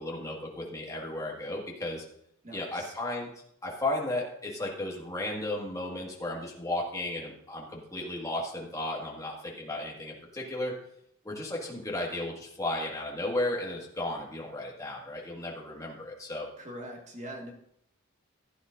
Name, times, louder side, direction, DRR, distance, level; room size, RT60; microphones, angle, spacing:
voice 1, 0.0-2.0 2.5-3.3 3.6-10.8 11.2-16.5, left 1 dB, 15° left, -2 dB, 1.8 m, -34 dB
voice 2, 2.4-2.9 16.6-17.5, right 1 dB, 35° right, 1 dB, 1.8 m, -42 dB
15.5 x 9.6 x 2.6 m, 0.73 s
head